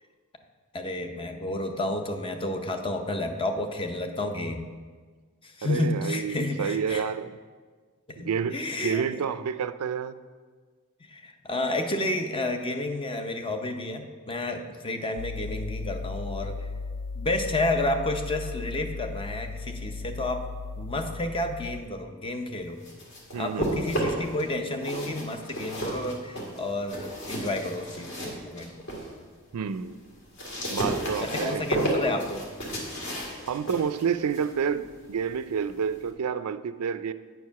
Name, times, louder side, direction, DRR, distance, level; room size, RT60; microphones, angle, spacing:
voice 1, 0.7-4.6 5.4-7.0 8.1-9.0 11.0-16.7 17.2-20.4 20.8-22.8 23.3-28.7 31.2-32.5, left 2 dB, 25° left, 5 dB, 0.6 m, -31 dB
voice 2, 5.6-7.4 8.2-10.2 23.3-23.8 29.5-30.0 30.7-31.9 33.5-37.1, right 7 dB, 90° right, 13 dB, 0.4 m, -29 dB
sound 1, 15.2-21.8, left 4 dB, 80° left, 0.4 m, -36 dB
sound 2, 22.6-24.4 24.7-29.1 29.5-36.1, right 1 dB, 55° left, 1.7 m, -33 dB
8.8 x 4.7 x 5.7 m, 1.5 s
head